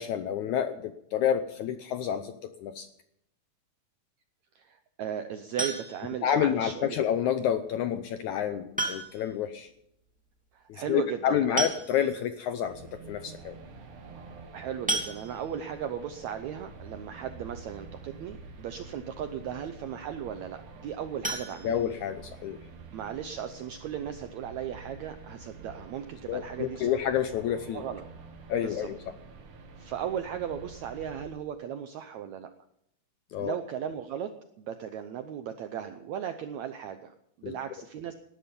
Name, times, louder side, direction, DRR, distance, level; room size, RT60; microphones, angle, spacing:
voice 1, 0.0-2.3 2.6-2.9 6.2-9.7 10.7-13.6 21.6-22.6 26.3-27.8 28.5-29.0 33.3-33.6 37.4-37.5, left 9 dB, 80° left, 10 dB, 1.8 m, -29 dB
voice 2, 4.5-7.0 10.5-11.7 14.5-21.7 22.9-26.9 27.7-28.0 28.6-28.9 29.8-32.5 33.4-34.3 34.6-38.1, right 9 dB, 80° right, 8 dB, 1.6 m, -36 dB
sound 1, 5.6-6.2 7.7-7.8 8.8-9.4 9.7-9.8 10.1-10.2 11.2-11.3 11.6-12.3 12.8-12.9 13.3-13.4 14.9-15.7 21.2-22.4 22.8-22.9 23.3-23.4 23.8-23.9, right 2 dB, 5° right, 1.9 m, -33 dB
sound 2, 12.7-31.3, right 4 dB, 60° right, 3.3 m, -48 dB
18.5 x 11.5 x 5.3 m, 0.77 s
omnidirectional pair, 4.2 m